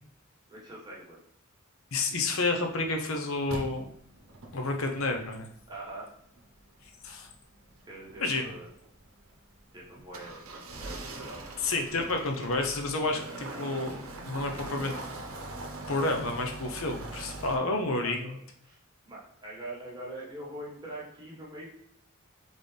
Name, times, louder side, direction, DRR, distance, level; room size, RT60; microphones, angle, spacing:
voice 1, 0.5-1.2 5.7-6.1 7.9-8.7 9.7-11.5 18.0-18.8 19.0-21.7, right 1 dB, 20° right, -5 dB, 1.5 m, -43 dB
voice 2, 1.9-3.9 4.5-5.5 7.0-7.3 8.2-8.5 11.6-14.9 15.9-18.3, left 2 dB, 75° left, 3 dB, 0.7 m, -30 dB
sound 1, 3.5-17.6, right 2 dB, 80° right, 0.8 m, -43 dB
4.1 x 3.6 x 3.3 m, 0.67 s
head